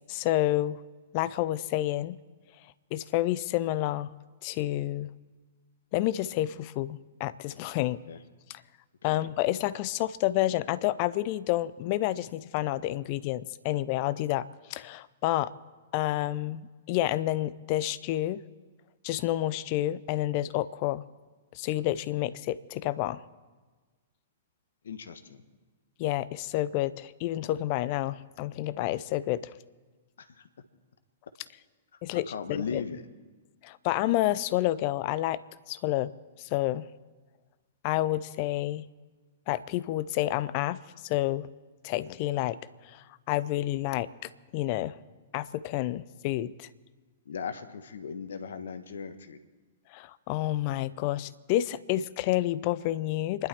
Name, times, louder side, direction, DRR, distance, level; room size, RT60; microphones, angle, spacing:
voice 1, 0.1-0.8 1.1-2.2 2.9-4.1 4.4-5.1 5.9-8.0 9.0-15.5 15.9-16.6 16.9-18.4 19.0-21.0 21.5-23.2 26.0-29.5 32.0-32.3 32.7-32.8 33.6-35.4 35.7-36.1 36.4-36.9 37.8-38.8 39.5-41.5 41.8-42.6 42.8-45.0 45.3-46.7 49.9-53.5, left 15 dB, 45° left, 16 dB, 0.7 m, -29 dB
voice 2, 24.8-25.4 30.2-30.5 31.9-32.0 32.3-33.1 47.2-49.4, left 6 dB, 70° left, 9 dB, 1.4 m, -38 dB
27.5 x 11.5 x 4.5 m, 1.3 s
figure-of-eight pair, 110°, 0 cm